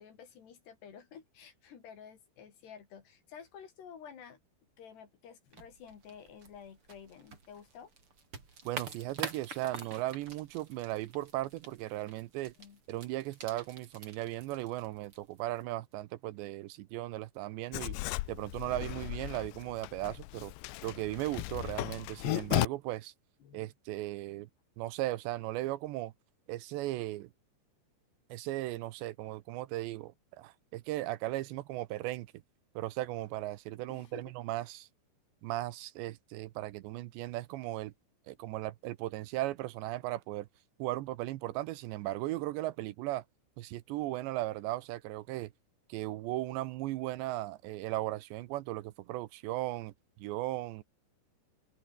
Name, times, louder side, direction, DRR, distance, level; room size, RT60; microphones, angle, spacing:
voice 1, 0.0-4.4 4.8-7.9 12.6-12.8 23.4-23.7 33.9-34.2, left 7 dB, 60° left, 5.1 m, -51 dB
sound 1, 5.5-15.7, right 4 dB, 30° right, 4.2 m, -47 dB
voice 2, 8.7-12.5 12.9-18.0 18.3-20.5 20.8-23.1 23.5-24.5 24.8-26.1 26.5-27.3 28.3-32.3 32.8-34.9 35.4-37.9 38.3-40.5 40.8-43.2 43.6-45.5 45.9-49.9 50.2-50.8, right 16 dB, 80° right, 2.8 m, -37 dB
Writing, 17.7-22.7, left 21 dB, 90° left, 2.5 m, -35 dB
open air
omnidirectional pair, 5.7 m